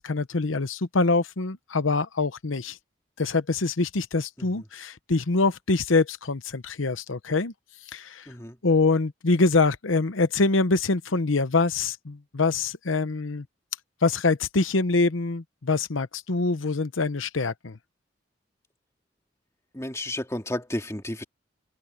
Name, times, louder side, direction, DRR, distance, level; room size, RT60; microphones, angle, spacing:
voice 1, 0.0-2.8 3.2-7.5 7.9-8.3 8.6-13.5 14.0-17.8, left 3 dB, 85° left, 0.9 m, -24 dB
voice 2, 8.3-8.6 19.7-21.2, left 1 dB, 15° left, 2.4 m, -32 dB
head